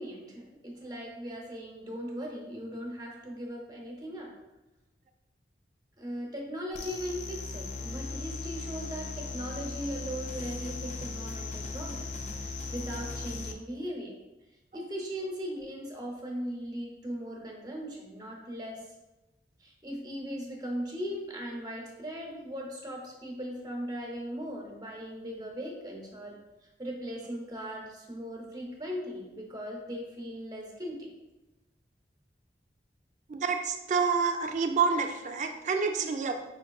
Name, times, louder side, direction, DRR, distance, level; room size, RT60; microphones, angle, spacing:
voice 1, 0.0-4.3 6.0-14.1 14.7-18.8 19.6-26.4 26.8-31.1, equal, 25° right, -1 dB, 0.7 m, -38 dB
sound 1, 6.7-13.5, left 3 dB, 40° left, 0.3 m, -38 dB
voice 2, 33.3-36.3, right 5 dB, 45° right, 6 dB, 0.4 m, -28 dB
5.2 x 3.6 x 2.3 m, 1.0 s
head